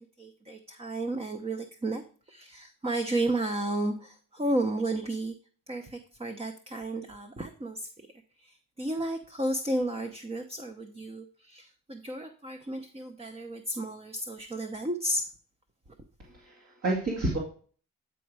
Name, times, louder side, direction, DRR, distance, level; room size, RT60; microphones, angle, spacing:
voice 1, 0.2-2.0 2.3-5.3 5.7-8.1 8.4-15.3, right 1 dB, 20° right, 6 dB, 0.8 m, -33 dB
voice 2, 16.3-17.4, right 2 dB, 50° right, -3 dB, 2.1 m, -30 dB
9.2 x 4.2 x 4.7 m, 0.43 s
cardioid pair, 90°, 30 cm